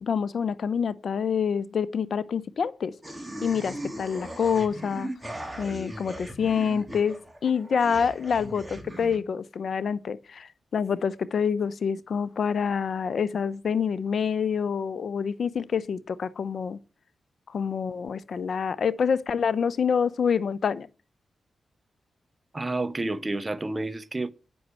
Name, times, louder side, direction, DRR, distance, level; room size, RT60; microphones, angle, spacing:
voice 1, 0.0-2.9 3.4-5.1 5.6-16.8 17.5-20.9, left 6 dB, 70° left, 0.7 m, -27 dB
sound 1, 3.0-9.2, right 1 dB, 15° right, 2.6 m, -39 dB
voice 2, 22.5-24.3, right 2 dB, 30° right, 0.9 m, -30 dB
9.4 x 6.2 x 6.9 m
cardioid pair, 50°, 0 cm